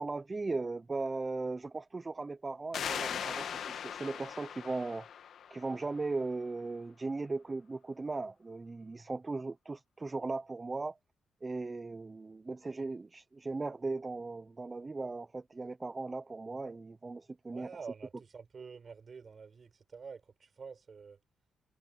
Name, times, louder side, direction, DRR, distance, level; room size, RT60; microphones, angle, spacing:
voice 1, 0.0-5.1 5.5-11.0 11.4-17.7, right 3 dB, 20° right, 0.7 m, -38 dB
sound 1, 2.7-6.1, left 8 dB, 65° left, 1.7 m, -39 dB
voice 2, 17.5-21.2, right 5 dB, 35° right, 6.5 m, -48 dB
cardioid pair, 135°, 0 cm